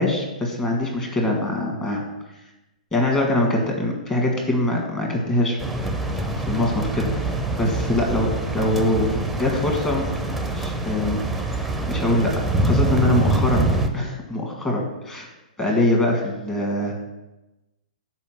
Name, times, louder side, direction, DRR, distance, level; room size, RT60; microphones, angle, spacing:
voice 1, 0.0-2.0 2.9-5.6 6.3-8.3 8.5-10.0 10.5-11.2 11.5-12.3 12.6-13.7 13.9-15.3 15.6-16.9, left 1 dB, 15° left, -1 dB, 1.6 m, -23 dB
sound 1, 5.6-13.9, right 2 dB, ahead, 0.6 m, -25 dB
7.0 x 4.5 x 5.9 m, 1.0 s
figure-of-eight pair, 110°, 5 cm